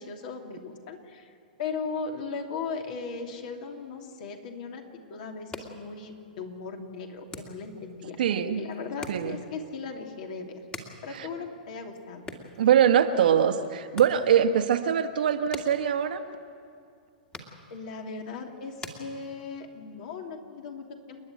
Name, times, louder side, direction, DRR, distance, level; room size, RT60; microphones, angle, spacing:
voice 1, 0.0-1.3 1.6-4.8 5.1-8.2 8.6-10.6 11.0-12.3 17.7-21.2, left 5 dB, 55° left, 3 dB, 2.9 m, -37 dB
sound 1, 5.3-19.8, left 2 dB, 20° left, 2.2 m, -47 dB
voice 2, 8.2-8.7 9.1-9.4 11.1-11.3 12.6-16.2, right 8 dB, 70° right, 7 dB, 1.4 m, -23 dB
30.0 x 10.0 x 9.3 m, 2.4 s
hypercardioid pair, 120°, 5 cm